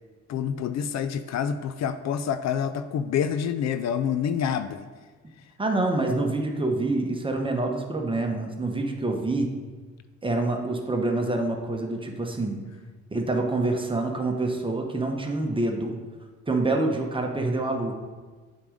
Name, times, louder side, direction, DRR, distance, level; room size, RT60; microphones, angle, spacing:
voice 1, 0.3-4.9, left 8 dB, 60° left, 11 dB, 0.5 m, -27 dB
voice 2, 5.6-9.5 10.2-12.6 13.1-16.0 16.5-17.9, right 2 dB, 15° right, 2 dB, 1.0 m, -26 dB
8.2 x 3.8 x 5.1 m, 1.4 s
cardioid pair, 90°, 30 cm